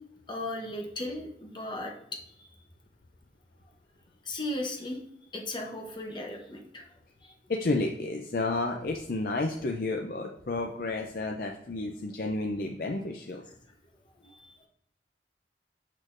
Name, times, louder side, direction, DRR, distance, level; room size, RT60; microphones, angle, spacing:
voice 1, 0.3-2.5 4.2-5.0 5.3-6.8 7.2-7.3 13.5-13.6 14.2-14.7, left 1 dB, 25° left, 1 dB, 0.9 m, -37 dB
voice 2, 7.5-13.4, left 2 dB, 55° left, 2 dB, 0.5 m, -31 dB
6.4 x 6.3 x 2.5 m, 0.77 s
head